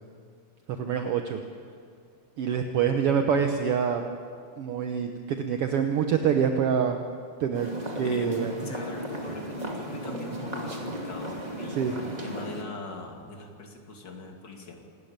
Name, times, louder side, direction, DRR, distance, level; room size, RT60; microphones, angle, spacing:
voice 1, 0.7-1.4 2.4-4.0 4.6-7.0 7.4-7.7 7.9-8.5 11.8-11.9, right 7 dB, 65° right, 5 dB, 1.5 m, -26 dB
sound 1, 7.5-12.6, right 1 dB, 15° right, 1.9 m, -35 dB
voice 2, 8.0-14.8, left 3 dB, 35° left, 2 dB, 2.8 m, -41 dB
27.0 x 13.5 x 8.9 m, 2.1 s
omnidirectional pair, 3.7 m